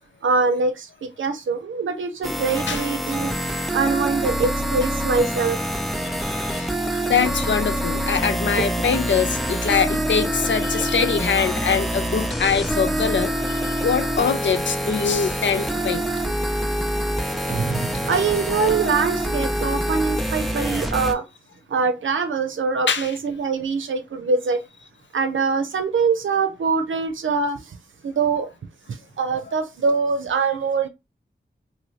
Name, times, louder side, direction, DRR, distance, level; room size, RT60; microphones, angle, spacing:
voice 1, 0.2-3.3 3.7-5.6 18.1-21.2 21.7-24.6 25.1-27.8 28.0-28.5 28.9-30.9, right 4 dB, 85° right, 0.6 m, -23 dB
sound 1, 2.2-21.1, right 1 dB, ahead, 0.5 m, -25 dB
voice 2, 6.0-6.7 7.0-16.0 22.9-23.1, left 6 dB, 70° left, 0.5 m, -23 dB
sound 2, 17.5-20.0, right 4 dB, 40° right, 0.7 m, -32 dB
2.8 x 2.7 x 3.1 m
wide cardioid pair, 75°, 20 cm